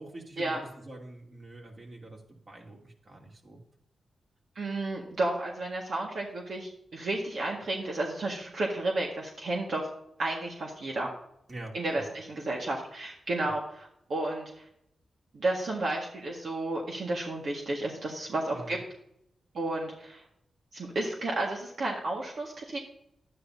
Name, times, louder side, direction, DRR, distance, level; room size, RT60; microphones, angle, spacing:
voice 1, 0.0-3.6 11.5-12.1 13.4-13.6 18.5-18.8, right 2 dB, 45° right, -2 dB, 2.9 m, -45 dB
voice 2, 4.6-9.9 10.2-11.1 11.7-14.7 15.3-18.8 19.5-20.2 20.7-22.8, right 2 dB, 65° right, -2 dB, 1.8 m, -32 dB
11.0 x 9.5 x 2.7 m, 0.75 s
cardioid pair, 65°, 0 cm